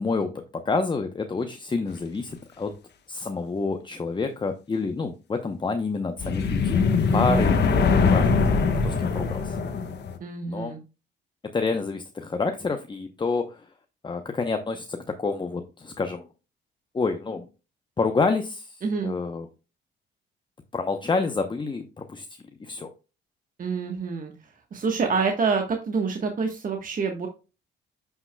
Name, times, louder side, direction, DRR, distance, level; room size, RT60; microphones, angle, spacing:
voice 1, 0.0-2.7 3.1-8.4 8.8-9.6 10.5-10.7 11.4-13.6 14.0-16.3 16.9-17.5 18.0-18.8 19.0-19.5 20.7-22.3 22.6-22.9, left 4 dB, 25° left, 6 dB, 0.8 m, -28 dB
sound 1, 6.2-10.2, left 5 dB, 60° left, 1.2 m, -22 dB
voice 2, 7.1-7.5 10.2-10.8 18.8-19.1 23.6-27.3, right 5 dB, 45° right, 3 dB, 1.3 m, -27 dB
9.5 x 5.7 x 2.2 m, 0.31 s
cardioid pair, 90°, 20 cm